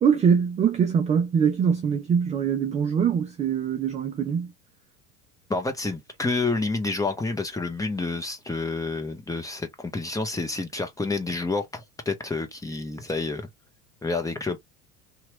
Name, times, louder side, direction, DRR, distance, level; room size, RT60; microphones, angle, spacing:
voice 1, 0.0-4.5, right 7 dB, 15° right, 0.3 m, -23 dB
voice 2, 5.5-13.5 14.0-14.6, left 3 dB, 5° left, 0.8 m, -29 dB
2.9 x 2.5 x 2.9 m
hypercardioid pair, 80°, 47 cm